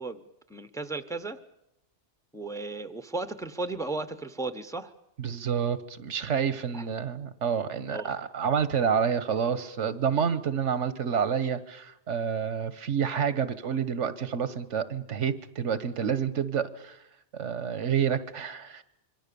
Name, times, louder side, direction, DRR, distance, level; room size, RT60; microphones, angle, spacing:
voice 1, 0.0-1.4 2.3-4.9 6.7-6.9 7.9-8.1, right 3 dB, 5° left, 12 dB, 0.9 m, -35 dB
voice 2, 5.2-17.0 17.3-18.8, right 7 dB, 85° right, 14 dB, 1.5 m, -28 dB
26.5 x 23.5 x 6.9 m, 0.84 s
omnidirectional pair, 1.2 m